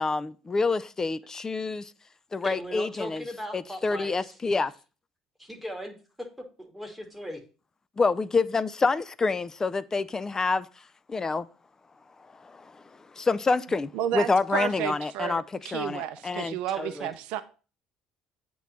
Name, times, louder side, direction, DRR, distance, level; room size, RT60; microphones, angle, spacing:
voice 1, 0.0-1.9 2.3-3.2 3.5-4.7 8.0-10.7 11.1-11.5 12.4-12.7 13.2-16.6, left 4 dB, 25° left, 0.5 m, -27 dB
voice 2, 2.4-4.4 5.4-6.3 6.6-7.4 16.7-17.1, equal, 5° right, 1.7 m, -38 dB
voice 3, 13.9-17.4, right 11 dB, 70° right, 0.5 m, -32 dB
8.2 x 3.1 x 5.2 m
hypercardioid pair, 60°, 2 cm